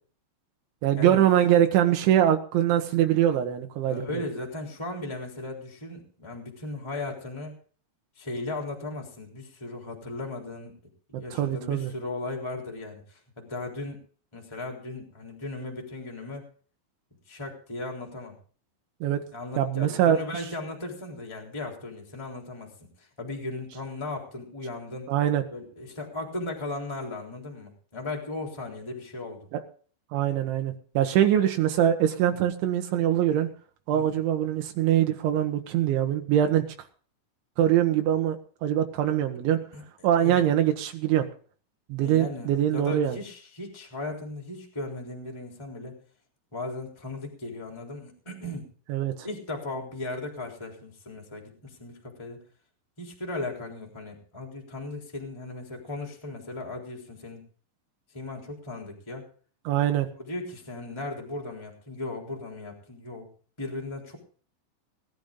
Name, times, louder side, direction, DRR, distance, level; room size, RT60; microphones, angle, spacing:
voice 1, 0.8-4.0 11.3-11.9 19.0-19.2 19.6-20.2 25.1-25.4 29.5-29.6 30.1-33.5 33.9-36.7 37.6-38.4 38.6-39.6 40.0-41.3 41.9-43.2 48.9-49.1 59.7-60.1, right 11 dB, 80° right, 5 dB, 3.7 m, -23 dB
voice 2, 3.9-7.6 8.2-10.7 11.1-14.0 14.3-16.5 17.3-18.4 19.3-25.1 25.5-29.5 32.3-32.4 33.9-34.2 39.7-39.8 40.2-40.4 42.0-46.0 46.5-48.7 49.2-52.4 53.0-57.4 58.1-59.3 60.1-63.3 63.6-64.2, left 2 dB, 5° left, 1 dB, 2.9 m, -37 dB
19.0 x 12.0 x 3.8 m, 0.42 s
omnidirectional pair, 5.3 m